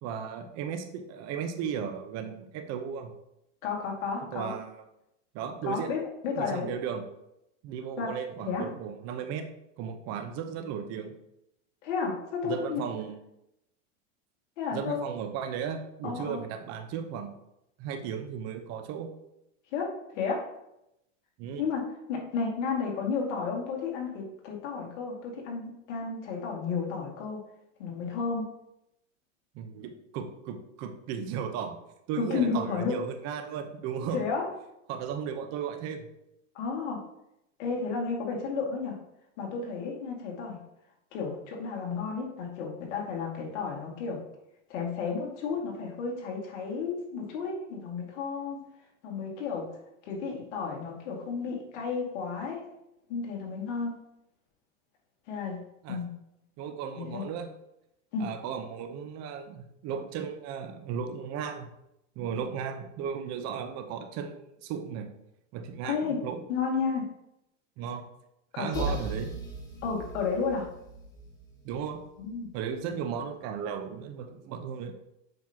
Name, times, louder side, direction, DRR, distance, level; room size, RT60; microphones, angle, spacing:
voice 1, 0.0-3.1 4.3-4.7 5.3-5.9 6.4-7.0 7.6-9.4 9.8-11.1 12.4-13.1 14.7-17.3 17.8-19.1 21.4-21.6 29.5-31.8 32.1-34.2 34.9-36.1 55.8-56.0 56.6-57.5 58.2-61.7 62.2-65.1 65.5-66.4 67.8-68.0 68.5-69.3 71.6-72.0 72.5-74.9, right 7 dB, 45° right, 7 dB, 0.9 m, -35 dB
voice 2, 3.6-4.5 5.6-6.7 8.0-8.1 8.4-8.7 11.8-12.8 14.6-15.0 16.0-16.4 19.7-20.5 21.6-21.8 22.1-27.4 27.8-28.5 32.2-33.0 34.1-34.5 36.5-37.0 37.6-39.0 39.4-40.6 41.1-44.2 44.7-48.6 49.0-49.7 50.1-52.6 53.1-54.0 55.3-55.6 55.9-56.1 57.0-57.2 58.1-58.3 65.8-66.2 66.5-67.1 68.5-68.9 69.8-70.7 72.2-72.5, left 5 dB, 65° left, -1 dB, 2.2 m, -32 dB
sound 1, 68.7-72.4, right 3 dB, 10° left, 2.0 m, -38 dB
7.7 x 5.6 x 2.9 m, 0.84 s
supercardioid pair, 130°, 38 cm